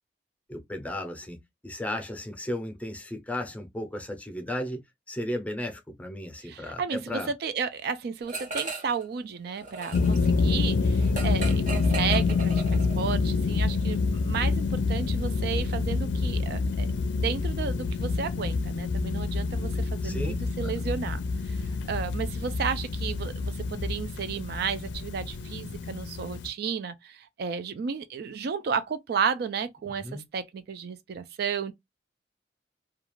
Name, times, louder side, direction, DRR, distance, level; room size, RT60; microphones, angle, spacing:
voice 1, 0.5-4.8 5.1-7.3 20.0-20.3 20.6-20.7 30.0-30.3, left 1 dB, 10° left, 0.6 m, -35 dB
voice 2, 6.4-16.9 17.2-21.2 21.5-21.6 21.9-31.7, right 6 dB, 60° right, 0.4 m, -33 dB
sound 1, 8.3-9.0 9.3-13.1, right 3 dB, 45° right, 0.8 m, -37 dB
sound 2, 9.9-26.5, left 4 dB, 75° left, 0.4 m, -27 dB
2.4 x 2.3 x 3.0 m
head